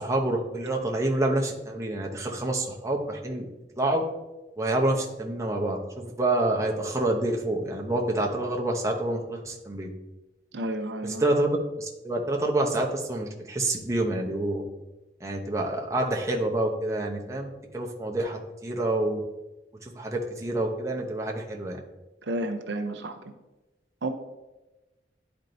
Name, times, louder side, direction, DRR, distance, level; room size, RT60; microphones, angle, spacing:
voice 1, 0.0-3.5 3.8-4.0 4.6-9.9 11.0-11.5 11.8-14.6 15.2-19.2 19.8-21.8, right 1 dB, 15° right, -1 dB, 0.8 m, -27 dB
voice 2, 10.5-11.2 22.2-23.2 24.0-24.1, right 1 dB, 80° right, 6 dB, 0.6 m, -31 dB
10.5 x 4.5 x 2.6 m, 1.0 s
head